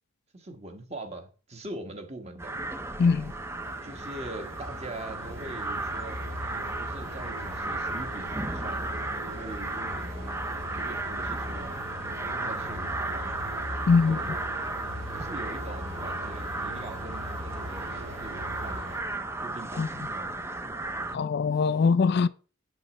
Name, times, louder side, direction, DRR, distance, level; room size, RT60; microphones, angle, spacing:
voice 1, 0.3-2.5 3.8-8.9 9.3-11.8 12.3-13.4 14.0-14.4 15.1-19.0 19.4-20.8 21.1-21.2, right 2 dB, 30° right, 1.4 m, -43 dB
sound 1, 2.4-21.2, right 2 dB, 15° right, 0.6 m, -35 dB
sound 2, 2.5-19.0, equal, 75° right, 4.1 m, -40 dB
voice 2, 3.0-3.3 13.9-14.2 19.8-19.9 21.1-22.3, left 4 dB, 55° left, 0.3 m, -22 dB
sound 3, 3.3-17.4, left 2 dB, 50° right, 2.4 m, -54 dB
8.2 x 7.9 x 4.2 m
head